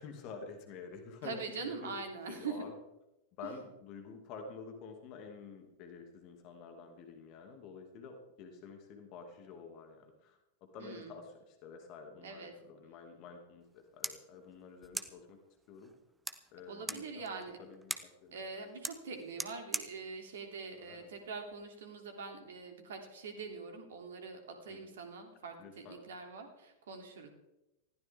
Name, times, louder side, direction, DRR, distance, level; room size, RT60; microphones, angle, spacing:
voice 1, 0.0-2.7 3.4-15.4 15.7-15.9 16.5-18.4 20.8-21.1 24.7-24.9 25.6-26.0, left 5 dB, 40° left, 4 dB, 2.5 m, -49 dB
voice 2, 1.2-2.7 3.4-3.6 10.8-11.2 12.2-12.5 16.7-17.6 18.3-27.3, right 4 dB, 60° right, 4 dB, 3.1 m, -44 dB
sound 1, 13.6-21.6, right 3 dB, 10° right, 1.2 m, -45 dB
20.0 x 15.5 x 3.7 m, 0.91 s
figure-of-eight pair, 90°, 0 cm